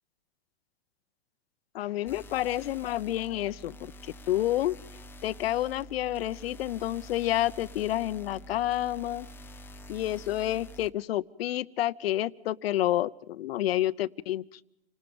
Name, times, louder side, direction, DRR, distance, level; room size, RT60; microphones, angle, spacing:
voice 1, 1.7-3.8 4.0-4.7 5.2-9.3 9.9-14.4, left 14 dB, 70° left, 16 dB, 0.8 m, -29 dB
sound 1, 2.1-10.9, equal, 5° left, 0.7 m, -47 dB
28.5 x 19.0 x 5.2 m, 0.88 s
hypercardioid pair, 135°, 31 cm